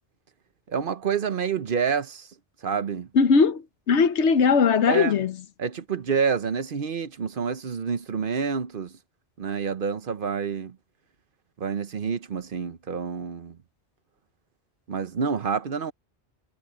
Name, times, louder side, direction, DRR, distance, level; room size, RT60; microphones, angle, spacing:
voice 1, 0.7-2.3 2.6-3.1 4.9-5.2 5.6-8.9 9.4-10.7 11.6-13.6 14.9-15.9, right 6 dB, 55° right, 0.9 m, -28 dB
voice 2, 3.1-5.3, left 5 dB, 80° left, 1.3 m, -20 dB
omnidirectional pair, 1.2 m